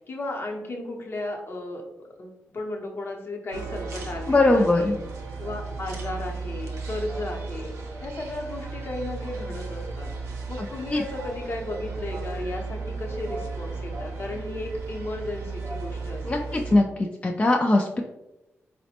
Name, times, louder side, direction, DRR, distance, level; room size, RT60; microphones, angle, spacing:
voice 1, 0.0-1.8 2.2-4.9 5.4-7.7 8.0-10.1 10.5-16.6, left 2 dB, 55° left, 1 dB, 0.8 m, -34 dB
sound 1, 3.5-16.8, right 4 dB, 80° right, 0.6 m, -35 dB
voice 2, 4.3-4.9 10.9-11.0 16.2-16.9 17.2-18.0, left 2 dB, 25° left, 1 dB, 0.3 m, -20 dB
4.0 x 2.1 x 2.8 m, 0.97 s
cardioid pair, 55°, 5 cm